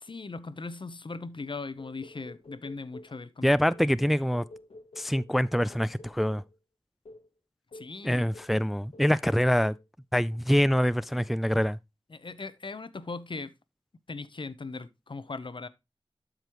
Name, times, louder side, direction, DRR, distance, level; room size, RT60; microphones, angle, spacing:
voice 1, 0.0-3.5 7.7-8.3 12.1-13.5 14.1-15.7, left 3 dB, 60° left, 0.8 m, -39 dB
sound 1, 1.8-3.2 3.7-6.6 7.0-7.3 7.7-8.0 8.3-8.6 8.9-9.2 9.6-9.8, left 2 dB, 80° left, 1.1 m, -49 dB
voice 2, 3.4-4.4 5.0-6.4 8.0-9.8 10.1-11.8, equal, ahead, 0.3 m, -25 dB
12.0 x 5.1 x 3.0 m
wide cardioid pair, 50°, 10 cm